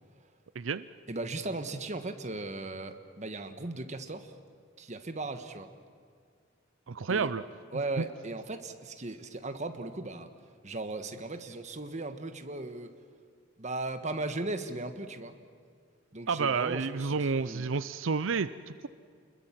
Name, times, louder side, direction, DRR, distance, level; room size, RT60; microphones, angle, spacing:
voice 1, 0.6-0.9 6.9-7.4 16.3-18.9, right 5 dB, 90° right, 14 dB, 0.6 m, -30 dB
voice 2, 1.1-4.3 4.8-5.7 7.1-7.3 7.7-10.3 10.6-12.9 13.6-15.4 16.1-17.7, right 2 dB, 40° right, 8 dB, 1.5 m, -37 dB
29.0 x 21.5 x 7.5 m, 2.2 s
head